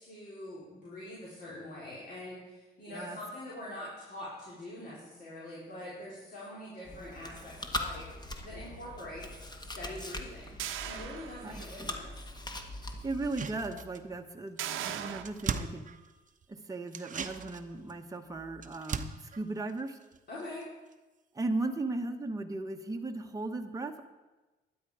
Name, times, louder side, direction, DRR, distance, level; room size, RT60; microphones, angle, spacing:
voice 1, 0.0-8.0 8.4-10.5 10.8-12.2 20.3-20.7, left 1 dB, 50° left, -7 dB, 4.0 m, -44 dB
voice 2, 2.9-3.2 11.4-11.7 12.8-15.9 16.5-20.0 21.3-24.0, right 2 dB, 15° right, 4 dB, 1.0 m, -37 dB
Chewing mastication, 6.8-13.5, left 1 dB, 20° left, 1.4 m, -41 dB
sound 1, 10.6-11.9 12.3-12.4 14.6-15.2, right 10 dB, 90° right, 0.9 m, -38 dB
sound 2, 13.1-14.3 14.6-14.7 14.9-16.4 16.9-20.6 20.9-21.0, right 6 dB, 40° right, 0.8 m, -40 dB
12.5 x 9.6 x 4.8 m, 1.2 s
cardioid pair, 90°, 20 cm